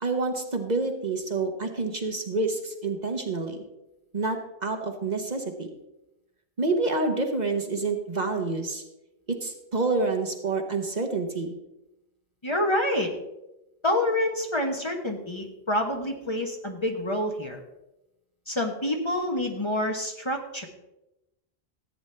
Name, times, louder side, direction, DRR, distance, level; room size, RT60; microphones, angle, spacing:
voice 1, 0.0-3.6 4.1-5.7 6.6-8.8 9.3-11.6, right 3 dB, 45° right, 4 dB, 1.1 m, -28 dB
voice 2, 12.4-13.1 13.8-17.6 18.5-20.7, left 1 dB, 30° left, 2 dB, 1.1 m, -27 dB
14.0 x 8.9 x 3.3 m, 0.92 s
omnidirectional pair, 1.0 m